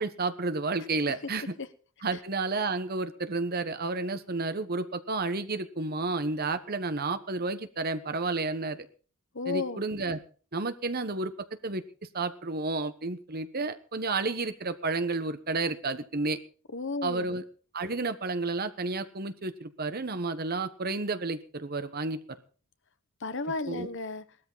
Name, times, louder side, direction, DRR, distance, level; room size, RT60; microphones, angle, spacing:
voice 1, 0.0-1.5 2.0-8.9 9.5-10.2 10.5-11.3 11.6-11.8 12.1-16.4 17.0-17.4 17.7-22.2 23.7-23.9, right 3 dB, 45° right, 1.2 m, -31 dB
voice 2, 9.3-9.8 16.7-17.3 23.2-24.2, left 3 dB, 60° left, 1.2 m, -33 dB
19.0 x 13.0 x 4.1 m
head